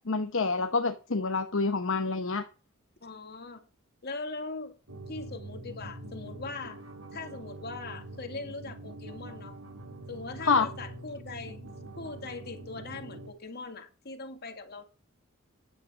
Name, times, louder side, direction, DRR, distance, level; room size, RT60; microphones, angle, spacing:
voice 1, 0.1-2.4 10.5-10.7, left 4 dB, 65° left, 1.0 m, -27 dB
voice 2, 3.0-3.6 4.0-4.7 5.1-6.8 7.1-9.5 10.1-11.6 12.0-14.8, left 3 dB, 50° left, 2.3 m, -40 dB
sound 1, 4.9-13.3, right 2 dB, 85° right, 3.7 m, -44 dB
10.5 x 7.1 x 5.1 m
head